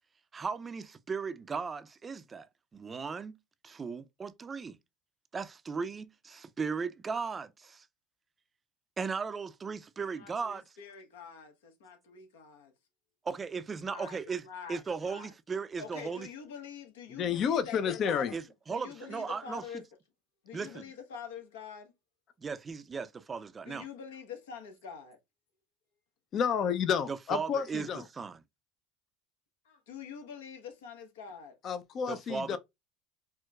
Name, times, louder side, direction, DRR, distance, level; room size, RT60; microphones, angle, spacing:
voice 1, 0.3-2.5 2.7-3.4 3.6-4.8 5.3-7.9 9.0-10.6 13.2-16.3 18.3-19.6 20.5-20.8 22.4-23.9 27.1-28.4 32.1-32.6, right 5 dB, 25° right, 0.4 m, -37 dB
voice 2, 10.1-12.7 13.9-15.3 15.8-18.3 18.7-19.8 20.4-21.9 23.7-25.2 29.6-31.6, left 7 dB, 85° left, 0.9 m, -45 dB
voice 3, 17.2-18.3 26.3-28.0 31.6-32.6, left 7 dB, 45° left, 0.4 m, -30 dB
4.4 x 2.1 x 2.3 m
supercardioid pair, 90°, 0 cm